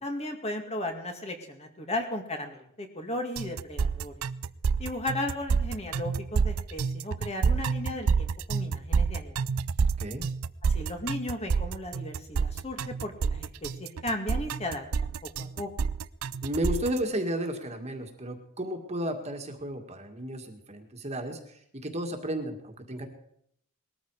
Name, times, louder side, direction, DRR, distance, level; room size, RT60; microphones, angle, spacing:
voice 1, 0.0-4.1 4.8-9.4 10.6-15.7, left 1 dB, 30° left, 4 dB, 2.2 m, -35 dB
sound 1, 3.4-17.0, right 5 dB, 80° right, 0.5 m, -28 dB
voice 2, 16.4-23.1, right 1 dB, 30° right, 5 dB, 2.0 m, -33 dB
20.5 x 14.0 x 4.9 m, 0.69 s
head